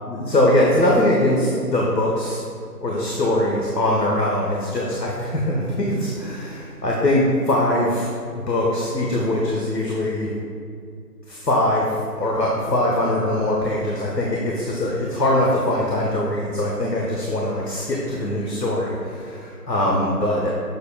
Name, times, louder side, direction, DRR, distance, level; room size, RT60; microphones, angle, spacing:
voice 1, 0.1-2.4 2.8-8.1 8.3-10.3 11.3-20.5, left 1 dB, 80° left, -3 dB, 1.2 m, -22 dB
7.0 x 6.7 x 2.2 m, 2.3 s
figure-of-eight pair, 170°, 49 cm